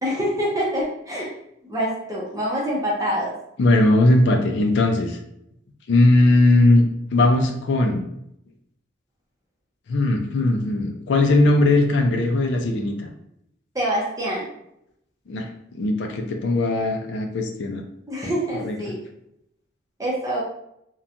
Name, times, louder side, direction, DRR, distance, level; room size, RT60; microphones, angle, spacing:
voice 1, 0.0-1.3 1.7-3.3 13.7-14.5 18.1-19.0 20.0-20.4, equal, 15° right, -4 dB, 0.6 m, -25 dB
voice 2, 3.6-5.2 5.9-6.8 7.1-8.0 9.9-13.1 15.3-15.5 15.7-17.8 18.6-18.8, left 2 dB, 65° left, 3 dB, 0.3 m, -19 dB
2.9 x 2.2 x 2.4 m, 0.76 s
head